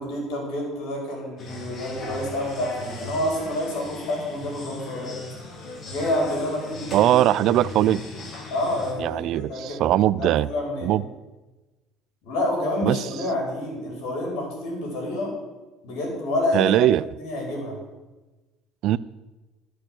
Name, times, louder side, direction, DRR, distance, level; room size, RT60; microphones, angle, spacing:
voice 1, 0.0-5.2 5.9-7.1 7.4-7.6 8.5-9.9 10.2-10.9 12.2-15.3 15.8-16.7 17.2-17.8, left 1 dB, 75° left, 0 dB, 5.0 m, -28 dB
sound 1, 1.4-8.9, left 2 dB, 40° left, 2.2 m, -38 dB
voice 2, 6.9-8.0 9.0-10.5 10.8-11.0 12.8-13.0 16.5-17.0 18.8-19.0, right 13 dB, 60° right, 19 dB, 0.4 m, -20 dB
12.0 x 6.5 x 7.7 m, 1.1 s
cardioid pair, 125°, 0 cm